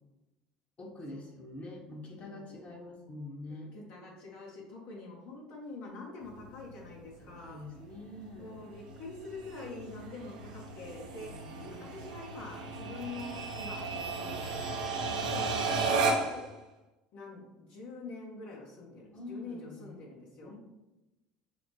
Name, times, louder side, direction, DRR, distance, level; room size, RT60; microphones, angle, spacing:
voice 1, 0.8-3.7 7.2-8.5 11.2-11.9 14.9-15.2 19.1-19.9 20.4-20.6, left 2 dB, 40° left, 1 dB, 1.0 m, -45 dB
voice 2, 2.1-7.6 8.4-11.3 11.6-14.7 15.2-16.4 17.1-20.5, left 3 dB, 60° left, -2 dB, 1.0 m, -46 dB
sound 1, 6.2-16.5, right 4 dB, 85° right, 0.7 m, -35 dB
6.1 x 2.1 x 2.9 m, 1.0 s
hypercardioid pair, 75°, 4 cm